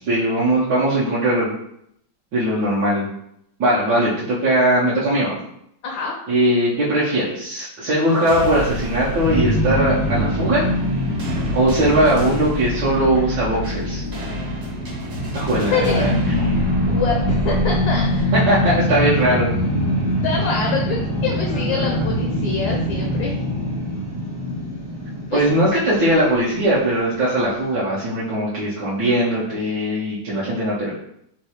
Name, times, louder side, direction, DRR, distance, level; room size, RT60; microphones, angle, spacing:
voice 1, 0.1-1.5 2.3-3.1 3.6-5.4 6.3-10.6 11.5-14.0 15.3-16.1 18.5-20.1 21.7-22.0 25.3-30.9, right 1 dB, 70° right, -8 dB, 1.3 m, -20 dB
voice 2, 5.8-6.2 15.6-16.1 16.9-18.6 20.2-23.4 25.3-25.4, left 5 dB, 70° left, 0 dB, 1.0 m, -25 dB
sound 1, 8.1-18.2, right 1 dB, 45° right, 0.9 m, -29 dB
sound 2, 9.2-26.4, equal, 5° left, 0.5 m, -24 dB
4.1 x 2.3 x 2.8 m, 0.74 s
omnidirectional pair, 2.0 m